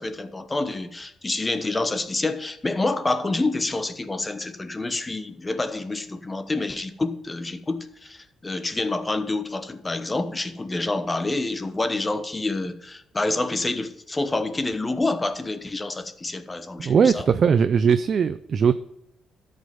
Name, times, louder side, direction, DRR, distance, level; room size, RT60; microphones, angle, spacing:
voice 1, 0.0-17.3, left 2 dB, 20° left, 1.0 m, -27 dB
voice 2, 16.8-18.7, right 6 dB, 50° right, 0.4 m, -19 dB
13.0 x 5.4 x 5.5 m
cardioid pair, 90°, 0 cm